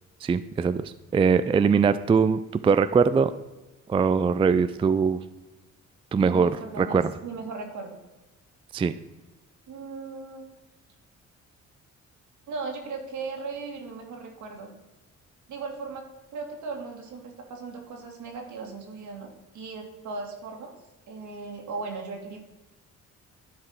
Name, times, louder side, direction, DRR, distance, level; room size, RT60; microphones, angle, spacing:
voice 1, 0.2-0.8 1.1-3.3 3.9-5.2 6.1-6.5 6.8-7.0 8.7-8.9, right 5 dB, 20° right, 13 dB, 0.3 m, -21 dB
voice 2, 6.2-8.0 9.7-10.5 12.5-14.8 15.5-16.1 16.3-20.7 21.1-22.4, right 4 dB, 70° right, 2 dB, 2.1 m, -37 dB
11.5 x 4.9 x 4.4 m, 1.1 s
cardioid pair, 90°, 30 cm